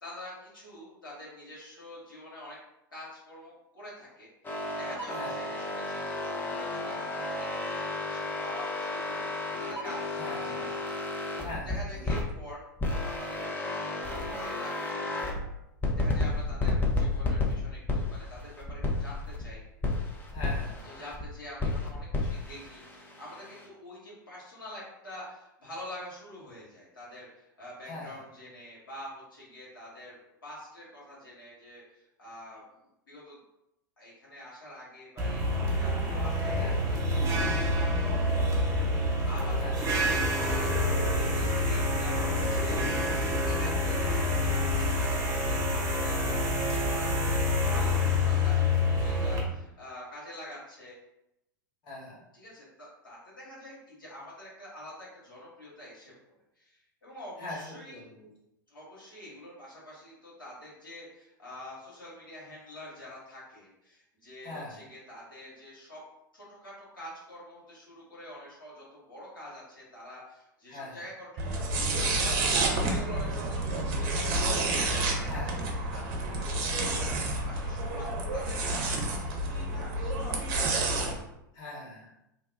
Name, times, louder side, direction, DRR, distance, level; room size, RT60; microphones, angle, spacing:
voice 1, 0.0-2.6 2.9-4.3 4.7-10.2 10.4-10.9 11.6-12.6 13.0-15.3 15.9-19.6 20.8-30.2 30.4-32.6 33.1-33.4 34.0-38.5 39.3-51.0 52.3-58.0 58.7-66.0 66.3-74.4 74.8-80.8, left 1 dB, 80° left, -7 dB, 1.5 m, -47 dB
sound 1, 4.4-12.3 12.8-15.4 15.8-19.5 19.8-21.2 21.6-23.7, left 2 dB, 15° left, 0.7 m, -32 dB
voice 2, 5.1-5.5 10.2-10.6 11.4-12.1 20.3-20.9 27.9-28.2 36.5-36.9 39.6-39.7 51.8-52.2 57.4-58.3 64.4-64.8 70.7-71.0 75.2-75.6 81.5-82.1, left 2 dB, 40° left, -6 dB, 1.4 m, -41 dB
sound 2, 35.2-49.4, left 1 dB, 30° right, 1.0 m, -27 dB
sound 3, 71.4-81.1, right 2 dB, 50° right, 0.7 m, -29 dB
2.8 x 2.3 x 3.5 m, 0.85 s
figure-of-eight pair, 90°, 11 cm